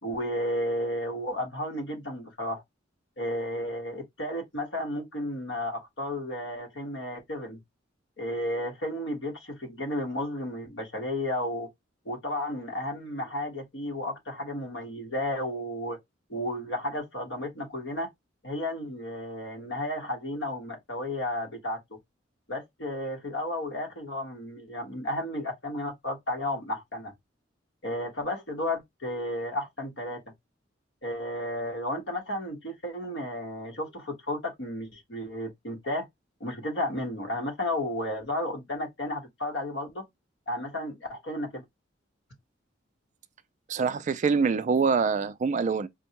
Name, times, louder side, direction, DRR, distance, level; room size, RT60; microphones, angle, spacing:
voice 1, 0.0-2.6 3.2-7.6 8.2-11.7 12.0-16.0 16.3-18.1 18.4-22.0 22.5-27.1 27.8-30.2 31.0-36.1 36.4-40.0 40.5-41.6, left 1 dB, 70° left, 1.3 m, -33 dB
voice 2, 43.7-45.9, right 5 dB, 40° right, 0.3 m, -25 dB
4.4 x 2.1 x 2.8 m
head